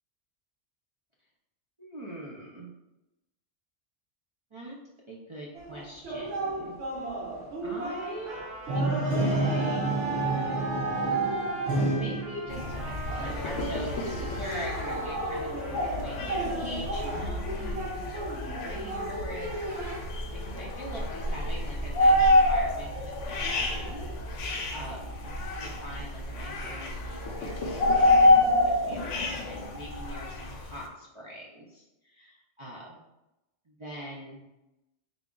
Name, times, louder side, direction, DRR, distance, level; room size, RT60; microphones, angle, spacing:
voice 1, 1.8-2.7 4.5-4.8 5.1-7.1 7.6-8.4 8.7-9.9 11.8-18.2 18.6-24.1 24.5-33.0 33.7-34.4, right 1 dB, 45° right, -4 dB, 0.4 m, -43 dB
sound 1, 5.6-20.0, right 2 dB, 70° right, 0.9 m, -31 dB
Trumpet, 7.7-16.2, right 1 dB, ahead, 0.7 m, -44 dB
sound 2, 12.5-30.9, left 1 dB, 85° left, 0.9 m, -28 dB
3.7 x 2.3 x 3.7 m, 0.94 s
omnidirectional pair, 1.2 m